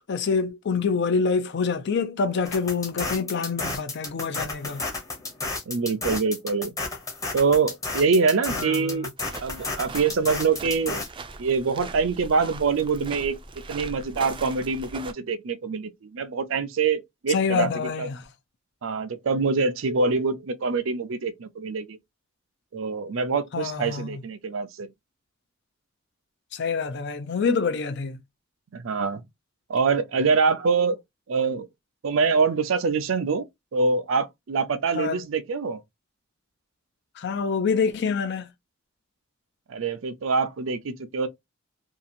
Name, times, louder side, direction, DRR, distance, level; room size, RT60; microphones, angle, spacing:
voice 1, 0.1-4.8 8.5-9.1 17.3-18.2 23.5-24.2 26.5-28.2 34.9-35.2 37.2-38.5, left 5 dB, 60° left, 0.5 m, -26 dB
sound 1, 2.5-11.1, left 3 dB, 15° left, 0.8 m, -32 dB
voice 2, 5.7-6.7 7.3-9.1 9.4-11.0 11.4-13.4 13.7-18.1 18.8-22.0 22.7-24.9 28.7-29.2 29.7-31.0 31.3-31.7 32.0-33.4 33.7-35.8 39.7-41.3, right 4 dB, 80° right, 0.5 m, -25 dB
sound 2, 9.2-15.1, right 3 dB, 25° right, 0.4 m, -40 dB
2.8 x 2.4 x 2.5 m
head